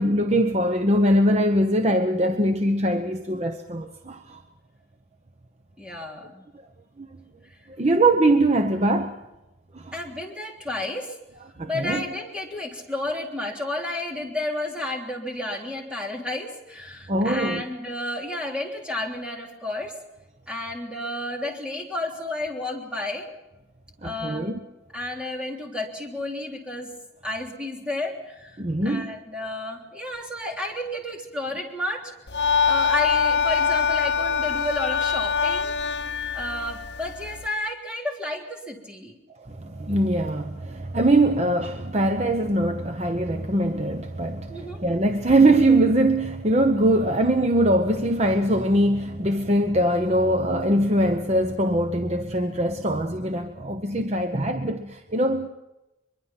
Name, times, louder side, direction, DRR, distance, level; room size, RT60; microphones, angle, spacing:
voice 1, 0.0-4.4 7.0-7.1 7.8-9.2 9.7-9.9 11.6-12.0 17.1-17.6 24.0-24.6 28.6-29.1 39.5-55.5, right 1 dB, 35° right, 0.9 m, -22 dB
voice 2, 5.8-6.4 9.9-11.2 11.7-19.9 20.5-23.2 24.0-24.5 24.9-26.9 27.2-32.1 32.4-35.7 36.3-39.1 44.5-44.8, left 1 dB, 5° right, 3.4 m, -31 dB
sound 1, 32.3-37.5, left 6 dB, 60° left, 1.0 m, -24 dB
23.0 x 23.0 x 5.9 m
head